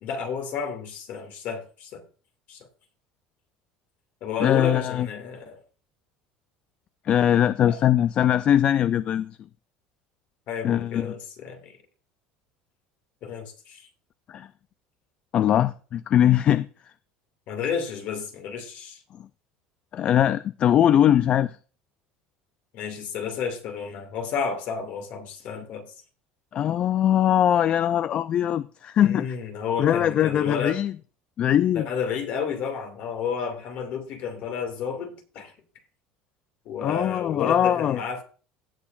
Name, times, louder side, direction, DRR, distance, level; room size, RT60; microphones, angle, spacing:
voice 1, 0.0-2.0 2.5-2.7 4.2-5.6 7.6-7.8 10.5-11.8 13.2-13.9 17.5-19.0 22.7-25.9 29.0-30.8 31.7-35.5 36.6-38.2, left 6 dB, 55° left, 2.3 m, -31 dB
voice 2, 4.4-5.1 7.0-9.3 10.6-11.1 14.3-14.5 15.3-16.7 19.9-21.6 26.5-29.3 29.8-30.9 31.4-31.9 36.8-38.0, left 10 dB, 35° left, 0.3 m, -21 dB
17.0 x 7.1 x 2.5 m
cardioid pair, 145°, 3 cm